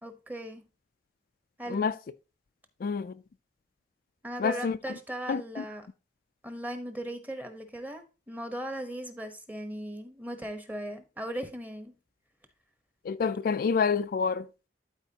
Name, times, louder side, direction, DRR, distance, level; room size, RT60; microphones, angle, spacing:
voice 1, 0.0-0.6 1.6-1.9 4.2-5.9 6.4-11.9, right 1 dB, 10° right, 1.0 m, -38 dB
voice 2, 2.8-3.1 4.4-4.8 5.3-5.6 13.1-14.5, left 5 dB, 55° left, 0.3 m, -28 dB
12.0 x 4.5 x 2.8 m
head